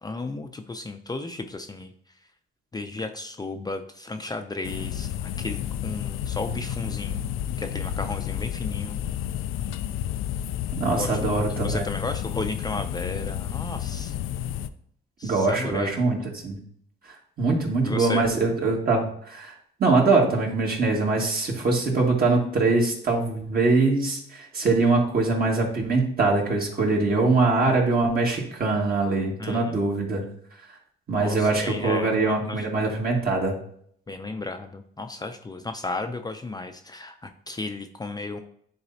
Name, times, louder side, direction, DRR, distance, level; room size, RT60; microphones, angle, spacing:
voice 1, 0.0-1.9 2.7-7.3 7.6-9.0 10.9-14.1 15.2-15.9 17.8-18.3 29.4-29.7 31.1-32.7 34.1-38.4, left 2 dB, 20° left, 6 dB, 0.5 m, -34 dB
sound 1, 4.6-14.7, left 10 dB, 90° left, 0.4 m, -31 dB
voice 2, 10.8-11.8 15.2-16.2 16.4-16.6 17.4-19.5 19.8-30.2 31.1-33.5, right 3 dB, 50° right, -1 dB, 2.1 m, -23 dB
9.9 x 3.9 x 2.8 m, 0.64 s
cardioid pair, 90°, 20 cm